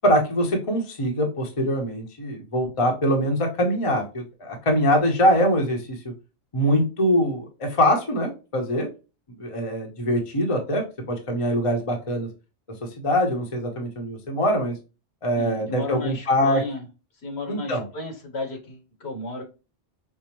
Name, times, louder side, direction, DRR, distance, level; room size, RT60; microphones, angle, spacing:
voice 1, 0.0-6.0 6.5-8.9 9.4-12.3 13.0-14.7 15.2-16.6 17.5-17.8, equal, 30° left, 2 dB, 0.8 m, -23 dB
voice 2, 15.3-16.9 17.2-19.4, left 3 dB, 65° left, 2 dB, 1.3 m, -33 dB
5.5 x 2.0 x 2.9 m, 0.31 s
omnidirectional pair, 1.2 m